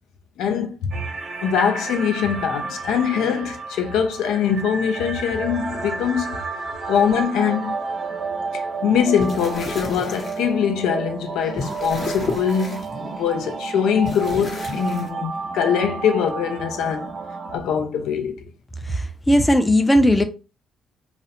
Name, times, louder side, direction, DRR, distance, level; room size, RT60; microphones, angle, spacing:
voice 1, 0.4-1.0 1.4-6.4 6.9-7.7 8.5-12.9 13.2-17.1 17.5-18.5, left 7 dB, 85° left, 0.4 m, -22 dB
sound 1, 0.9-17.6, right 4 dB, 50° right, 0.4 m, -31 dB
sound 2, 9.2-10.4 11.2-13.3 14.0-15.1, left 3 dB, 40° left, 0.8 m, -32 dB
voice 2, 18.9-20.2, equal, 15° left, 0.4 m, -17 dB
2.4 x 2.0 x 2.8 m
cardioid pair, 90°, 0 cm